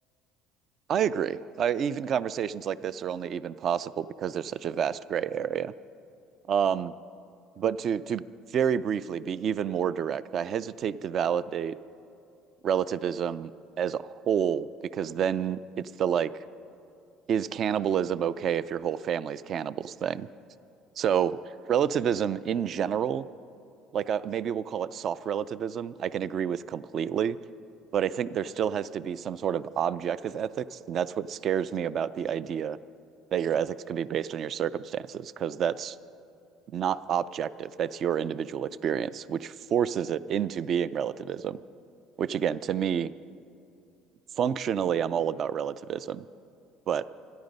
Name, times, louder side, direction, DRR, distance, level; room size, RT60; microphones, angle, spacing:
voice 1, 0.9-5.7 6.5-6.9 7.6-8.2 8.5-11.7 12.6-13.5 13.8-16.3 17.3-20.3 21.0-21.4 21.7-23.3 23.9-27.4 27.9-32.8 33.3-36.0 36.7-41.6 42.2-43.1 44.4-46.2 46.9-47.1, right 8 dB, 45° right, 17 dB, 0.4 m, -29 dB
26.0 x 10.5 x 5.3 m, 2.5 s
cardioid pair, 135°, 0 cm